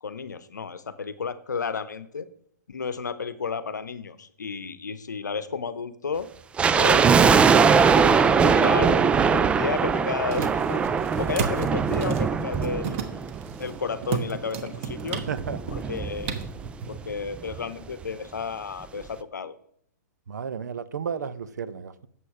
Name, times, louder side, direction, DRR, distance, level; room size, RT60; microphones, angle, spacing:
voice 1, 0.0-2.3 2.7-6.3 6.7-7.6 8.1-9.1 9.3-10.8 11.2-13.3 13.6-15.2 15.7-16.5 16.9-19.5, left 5 dB, 80° left, 0.8 m, -32 dB
sound 1, 6.6-13.9 14.1-14.2 14.9-16.7 17.0-17.1 17.3-17.6 18.0-18.1, right 6 dB, 10° right, 0.3 m, -21 dB
sound 2, 10.1-17.0, right 6 dB, 45° right, 1.1 m, -35 dB
voice 2, 15.3-15.9 20.3-22.1, right 7 dB, 70° right, 0.7 m, -33 dB
8.4 x 7.5 x 4.8 m
hypercardioid pair, 120°, 9 cm